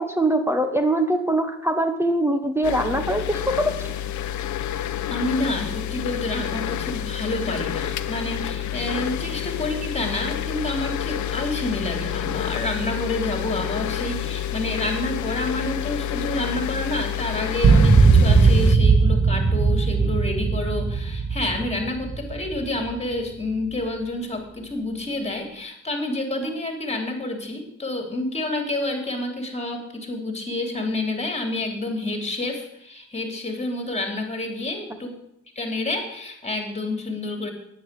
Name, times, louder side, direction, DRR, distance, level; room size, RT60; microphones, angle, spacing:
voice 1, 0.0-3.9, right 1 dB, 10° right, 7 dB, 1.2 m, -23 dB
sound 1, 2.6-18.8, left 10 dB, 70° left, 0.9 m, -29 dB
voice 2, 5.1-35.1 35.5-37.5, left 2 dB, 20° left, 4 dB, 3.3 m, -29 dB
sound 2, 17.6-23.0, right 4 dB, 25° right, 1.3 m, -18 dB
10.0 x 9.8 x 8.2 m, 0.77 s
cardioid pair, 90°, 30 cm